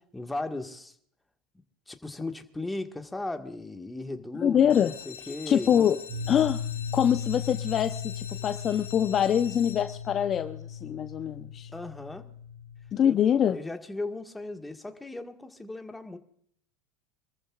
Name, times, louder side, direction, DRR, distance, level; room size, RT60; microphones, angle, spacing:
voice 1, 0.1-1.0 1.9-5.9 11.7-12.3 13.0-13.2 13.5-16.2, left 2 dB, 10° left, 5 dB, 1.7 m, -37 dB
voice 2, 4.4-4.9 5.5-6.0 6.3-6.6 6.9-11.7 12.9-13.6, left 9 dB, 40° left, 9 dB, 0.8 m, -24 dB
sound 1, 4.6-10.3 10.9-11.4 11.8-11.9 12.2-12.3 12.7-12.8, left 8 dB, 85° left, 2.0 m, -44 dB
sound 2, 6.1-12.9, left 7 dB, 60° right, 6.8 m, -37 dB
26.5 x 14.0 x 2.5 m, 0.65 s
hypercardioid pair, 90°, 0 cm